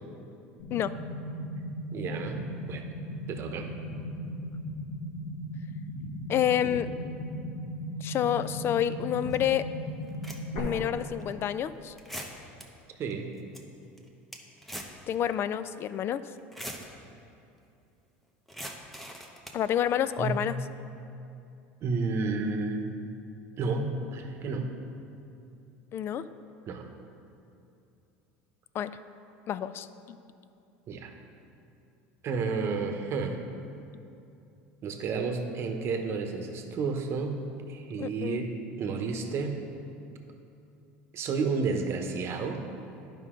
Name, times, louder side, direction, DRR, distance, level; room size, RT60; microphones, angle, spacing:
sound 1, 0.6-10.6, equal, 70° left, 1.9 m, -37 dB
voice 1, 1.9-2.9 3.3-3.7 13.0-13.3 20.2-20.4 21.8-22.9 23.6-24.7 26.7-26.9 30.9-31.1 32.2-33.4 34.8-37.4 37.7-39.6 41.1-42.7, right 4 dB, 45° right, 5 dB, 0.9 m, -31 dB
voice 2, 6.3-6.9 8.0-9.7 10.6-11.9 15.1-16.2 19.5-20.6 25.9-26.3 28.7-28.9 29.5-30.2 38.0-38.5, left 10 dB, 40° left, 14 dB, 0.3 m, -29 dB
sound 2, 9.3-9.4 10.0-10.7 11.2-11.3 12.0-12.6 13.1-13.2 13.4-13.6 14.0-15.0 15.3-15.4 16.4-16.9 18.5-19.6, equal, 5° left, 0.9 m, -41 dB
11.0 x 5.3 x 3.8 m, 2.7 s
supercardioid pair, 105°, 6 cm